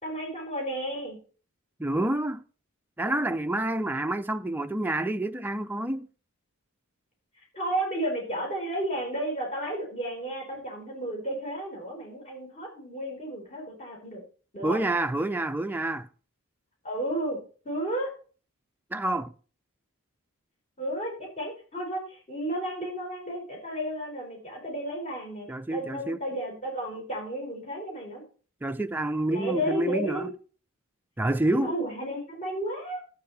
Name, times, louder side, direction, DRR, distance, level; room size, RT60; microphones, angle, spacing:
voice 1, 0.0-1.2 7.5-14.2 14.5-14.8 16.8-17.4 17.6-18.1 20.8-28.2 29.3-30.3 31.6-33.0, right 1 dB, 30° left, 4.4 m, -33 dB
voice 2, 1.8-2.4 3.0-6.1 14.6-16.1 18.9-19.3 25.5-26.2 28.6-30.3 31.2-31.7, right 1 dB, 10° right, 0.4 m, -28 dB
12.0 x 8.5 x 4.1 m
head